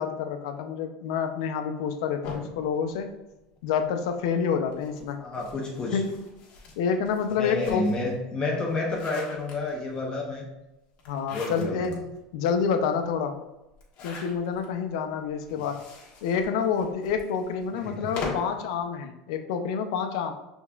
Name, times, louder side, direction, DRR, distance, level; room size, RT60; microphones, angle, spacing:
voice 1, 0.0-3.1 3.6-5.2 5.9-6.2 6.8-8.0 11.1-12.1 12.3-13.4 14.0-15.8 16.2-20.3, left 6 dB, 75° left, 7 dB, 0.6 m, -28 dB
sound 1, 2.2-3.8 4.7-8.1 8.6-10.0 11.0-12.0 12.4-12.5 12.8-12.9 13.7-14.7 15.4-18.6, left 3 dB, 50° left, 1.3 m, -41 dB
voice 2, 5.2-6.0 7.3-10.5 11.3-12.0 17.7-18.1, left 3 dB, 25° left, -2 dB, 0.9 m, -30 dB
5.4 x 3.5 x 2.4 m, 0.96 s
supercardioid pair, 110°, 3 cm